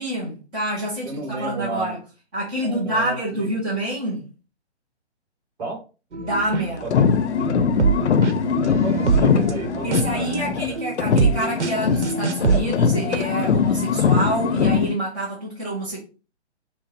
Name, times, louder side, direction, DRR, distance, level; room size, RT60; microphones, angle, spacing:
voice 1, 0.0-2.0 2.3-4.2 6.2-6.9 9.8-16.0, right 1 dB, 10° right, 0.5 m, -27 dB
voice 2, 1.0-2.0 2.6-3.5 5.6-5.8 6.8-7.1 8.4-10.8, right 3 dB, 35° right, 2.1 m, -32 dB
sound 1, 6.1-12.6, right 6 dB, 80° right, 0.9 m, -25 dB
sound 2, 6.8-10.7 11.0-15.0, left 6 dB, 75° left, 0.7 m, -21 dB
6.0 x 2.1 x 4.2 m
hypercardioid pair, 155°, 35 cm